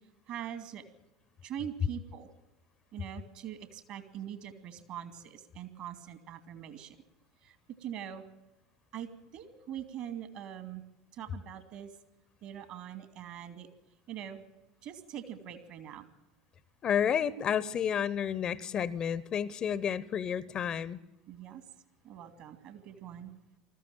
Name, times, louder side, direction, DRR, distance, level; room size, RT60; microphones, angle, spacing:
voice 1, 0.3-0.8 1.4-2.3 2.9-7.0 7.4-8.2 8.9-10.8 11.1-11.9 12.4-13.7 14.1-14.4 14.8-16.1 21.3-21.6 22.0-23.3, right 10 dB, 50° right, 10 dB, 2.5 m, -43 dB
voice 2, 16.8-21.0, left 8 dB, 35° left, 19 dB, 0.9 m, -31 dB
20.5 x 14.5 x 9.1 m, 0.98 s
figure-of-eight pair, 75°, 2 cm